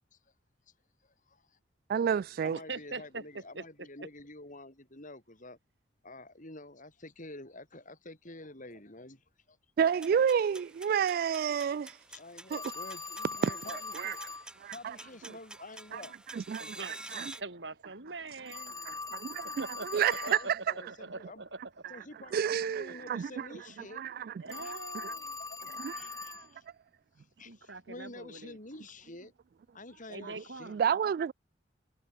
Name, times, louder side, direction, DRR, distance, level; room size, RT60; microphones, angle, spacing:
voice 1, 1.0-1.6 2.4-5.6 6.0-9.6 12.1-14.2 14.7-16.4 20.2-21.4 21.9-24.0 24.6-24.7 25.5-25.6 25.9-26.6 27.2-29.3 29.7-31.0, left 2 dB, 45° left, 7.0 m, -49 dB
voice 2, 1.9-2.6 9.8-12.0 12.5-12.6 13.4-14.1 14.6-15.0 15.9-16.0 16.3-17.3 18.8-19.7 19.9-20.1 22.3-23.5 24.0-24.3 24.9-25.1 25.8-26.4 30.2-30.3 30.7-31.3, right 7 dB, 55° right, 0.3 m, -30 dB
voice 3, 2.5-3.9 16.6-18.8 19.6-21.6 24.4-25.4 27.5-28.6 30.1-30.8, right 3 dB, 80° right, 3.8 m, -43 dB
sound 1, 9.8-17.4, right 1 dB, 5° right, 5.2 m, -50 dB
Telephone, 12.5-14.5 18.5-20.5 24.5-26.5, left 4 dB, 20° left, 6.0 m, -41 dB
head